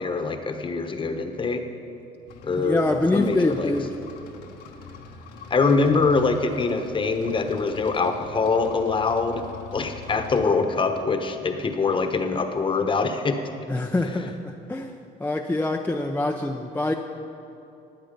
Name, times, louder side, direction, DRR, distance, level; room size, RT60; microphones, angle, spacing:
voice 1, 0.0-1.6 2.4-2.8 3.1-3.7 5.5-9.4 9.7-13.4, left 4 dB, 30° left, 6 dB, 1.1 m, -24 dB
sound 1, 2.3-10.5, left 4 dB, 85° left, 1.3 m, -43 dB
voice 2, 2.6-3.9 13.7-14.9 15.2-16.9, left 2 dB, 10° left, 2 dB, 0.6 m, -25 dB
20.0 x 7.9 x 5.3 m, 2.8 s
cardioid pair, 110°, 17 cm